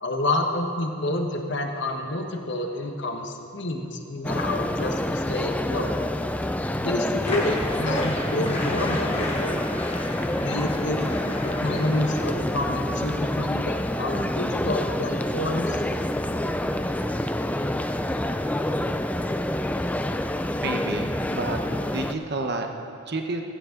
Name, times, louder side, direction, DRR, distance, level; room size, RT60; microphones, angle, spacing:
voice 1, 0.0-5.9 6.7-9.7 10.4-11.1 11.4-15.8, left 1 dB, 55° left, 3 dB, 1.3 m, -28 dB
sound 1, 4.2-22.1, left 1 dB, 5° left, 0.4 m, -27 dB
sound 2, 7.2-12.2, left 2 dB, 30° left, 1.8 m, -34 dB
voice 2, 20.6-23.4, right 2 dB, 50° right, 4 dB, 1.1 m, -31 dB
16.0 x 15.0 x 3.9 m, 2.6 s
head